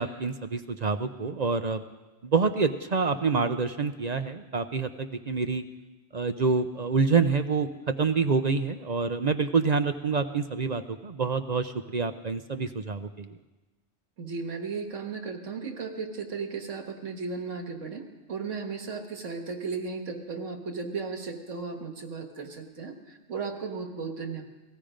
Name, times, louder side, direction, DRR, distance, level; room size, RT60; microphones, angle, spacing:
voice 1, 0.0-1.8 2.2-5.6 6.1-7.7 8.0-13.3, right 4 dB, 45° right, 9 dB, 0.6 m, -27 dB
voice 2, 14.2-24.4, right 4 dB, 90° right, 4 dB, 1.9 m, -35 dB
18.0 x 14.5 x 5.1 m, 1.1 s
omnidirectional pair, 1.2 m